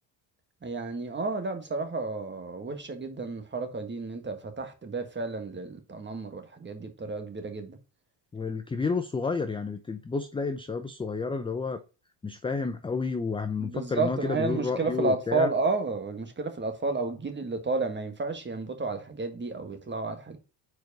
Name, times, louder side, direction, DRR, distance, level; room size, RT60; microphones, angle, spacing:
voice 1, 0.6-7.8 13.6-20.4, right 3 dB, 20° right, 1.5 m, -31 dB
voice 2, 8.3-11.8 12.2-15.5, left 4 dB, 10° left, 0.4 m, -30 dB
4.7 x 4.6 x 5.9 m
supercardioid pair, 85°, 50 cm